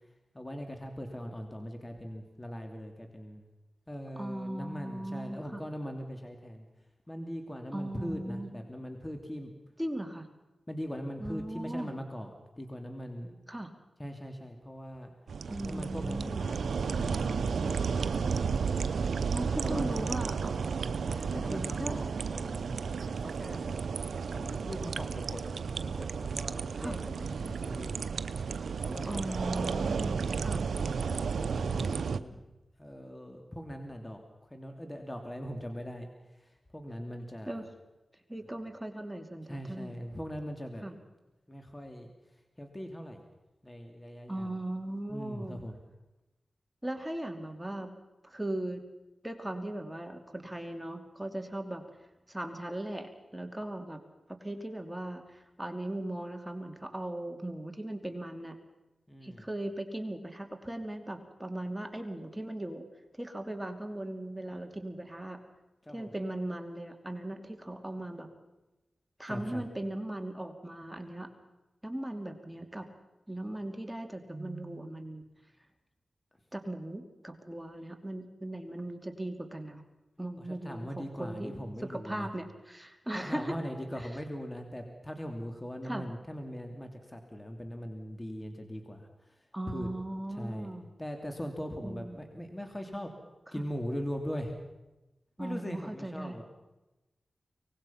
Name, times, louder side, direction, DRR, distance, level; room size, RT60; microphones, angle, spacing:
voice 1, 0.3-3.5 3.9-6.7 7.1-9.5 10.7-12.3 12.6-13.3 14.0-15.1 15.6-17.8 19.6-20.3 21.0-23.8 24.3-25.4 26.0-28.1 28.8-29.4 30.7-32.4 32.8-34.2 34.5-36.1 36.7-37.7 39.5-40.8 41.5-42.1 42.6-43.2 43.6-44.5 45.1-45.8 59.1-59.4 65.9-66.1 69.3-69.6 80.4-82.3 83.1-89.1 89.7-89.9 90.4-90.7 91.0-93.1 93.5-94.5 95.4-96.4, equal, 20° left, 4 dB, 2.9 m, -40 dB
voice 2, 4.2-5.6 7.7-8.5 9.8-10.3 11.2-11.9 13.5-13.7 15.5-16.4 19.3-20.7 21.3-22.0 26.8-27.0 29.0-30.7 37.5-37.7 38.3-40.0 40.8-41.0 44.3-45.6 46.8-47.9 48.2-48.8 49.2-51.8 52.3-54.0 54.4-58.6 59.2-62.9 63.2-65.4 65.9-68.3 69.2-71.3 71.8-72.9 73.3-75.2 76.5-79.8 80.2-83.6 84.0-84.1 85.8-86.1 89.5-90.9 91.8-92.2 93.5-93.6 95.4-96.4, right 1 dB, 10° right, 5 dB, 2.7 m, -38 dB
sound 1, 15.3-32.2, right 5 dB, 85° right, 0.7 m, -33 dB
24.0 x 19.5 x 5.8 m, 1.0 s
cardioid pair, 40°, 0 cm